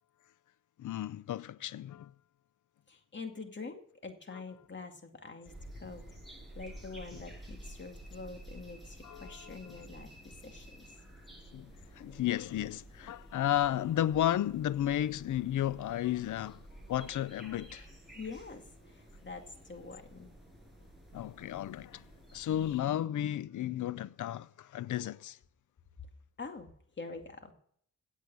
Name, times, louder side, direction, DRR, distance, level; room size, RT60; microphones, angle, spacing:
voice 1, 0.8-2.1 7.1-7.2 9.0-9.8 11.5-16.6 16.9-17.9 21.1-22.1 22.3-25.4, left 12 dB, 70° left, 0.5 m, -33 dB
voice 2, 2.9-6.0 6.3-10.9 18.1-20.4 26.4-27.5, left 4 dB, 35° left, 2.3 m, -46 dB
sound 1, 5.4-22.8, right 1 dB, ahead, 6.3 m, -52 dB
16.5 x 8.3 x 6.2 m
wide cardioid pair, 110°, 31 cm